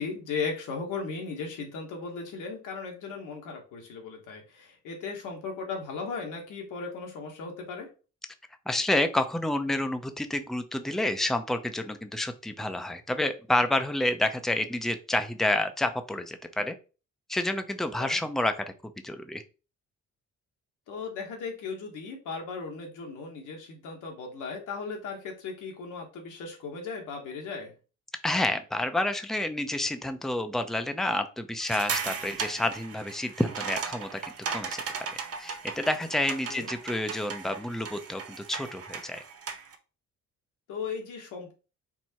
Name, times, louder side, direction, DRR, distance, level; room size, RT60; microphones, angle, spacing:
voice 1, 0.0-7.9 18.0-18.2 20.9-27.7 36.5-36.7 40.7-41.5, left 4 dB, 85° left, 1 dB, 1.6 m, -37 dB
voice 2, 8.7-16.7 17.3-18.7 19.0-19.4 28.2-34.2 34.5-34.8 35.4-39.2, left 1 dB, ahead, 8 dB, 0.5 m, -29 dB
sound 1, 31.6-39.8, right 6 dB, 50° right, 0.9 m, -37 dB
4.5 x 2.7 x 4.3 m, 0.34 s
cardioid pair, 90°, 30 cm